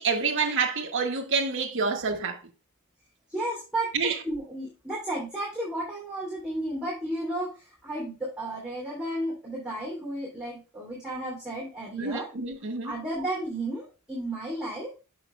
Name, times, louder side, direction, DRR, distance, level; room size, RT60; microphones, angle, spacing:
voice 1, 0.0-2.4 3.9-4.2 12.0-12.9, right 4 dB, 60° right, 1.1 m, -27 dB
voice 2, 3.3-3.9 4.2-12.3 12.8-14.9, right 1 dB, 5° right, 2.7 m, -33 dB
6.9 x 5.5 x 3.1 m
head